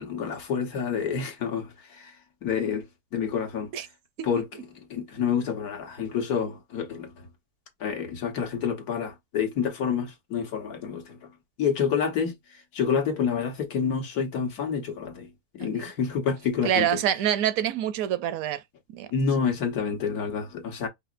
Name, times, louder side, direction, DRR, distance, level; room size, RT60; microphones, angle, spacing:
voice 1, 0.0-2.1 2.4-2.8 3.1-3.7 4.2-4.4 4.9-7.1 7.8-11.2 11.6-12.3 12.7-15.3 15.6-16.9 19.1-20.9, left 6 dB, 80° left, 1.6 m, -28 dB
voice 2, 16.6-18.6 18.9-19.1, right 10 dB, 75° right, 1.0 m, -26 dB
4.9 x 2.9 x 2.5 m
omnidirectional pair, 1.6 m